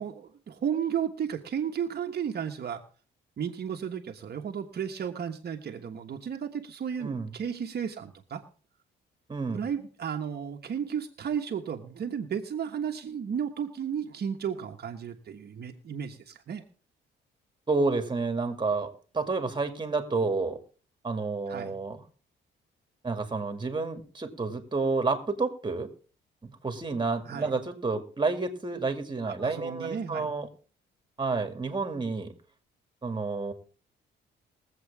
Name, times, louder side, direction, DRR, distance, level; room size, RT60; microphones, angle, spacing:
voice 1, 0.0-2.8 3.4-8.4 9.5-16.6 21.5-21.8 27.2-27.5 29.2-30.4, right 8 dB, 55° right, 4 dB, 1.3 m, -33 dB
voice 2, 7.0-7.3 9.3-9.6 17.7-20.6 21.0-22.0 23.0-25.9 26.4-30.5 31.2-32.3 33.0-33.5, right 3 dB, 25° right, 6 dB, 2.3 m, -30 dB
21.5 x 7.9 x 3.6 m, 0.38 s
cardioid pair, 90°, 20 cm